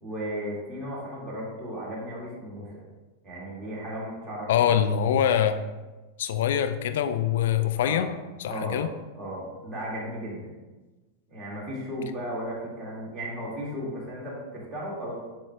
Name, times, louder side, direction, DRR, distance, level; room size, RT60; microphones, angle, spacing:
voice 1, 0.0-2.7 3.2-4.7 7.7-8.1 8.5-8.8 9.1-10.5 11.3-15.1, equal, 20° right, -6 dB, 2.1 m, -35 dB
voice 2, 4.5-5.6 6.2-8.1 8.4-8.9, left 9 dB, 55° left, 9 dB, 0.4 m, -24 dB
8.0 x 6.1 x 2.3 m, 1.2 s
figure-of-eight pair, 90°, 0 cm